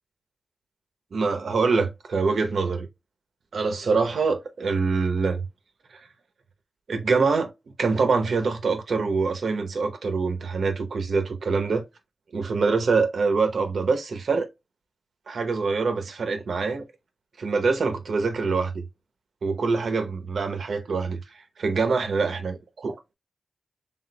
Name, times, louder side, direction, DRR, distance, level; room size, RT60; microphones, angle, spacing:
voice 1, 1.1-2.9 3.5-5.4 6.9-7.5 7.8-11.8 12.3-14.5 15.3-16.8 17.4-18.7 19.4-21.2 21.6-22.5, right 4 dB, 90° right, 0.8 m, -24 dB
4.3 x 3.6 x 2.2 m
cardioid pair, 50°, 0 cm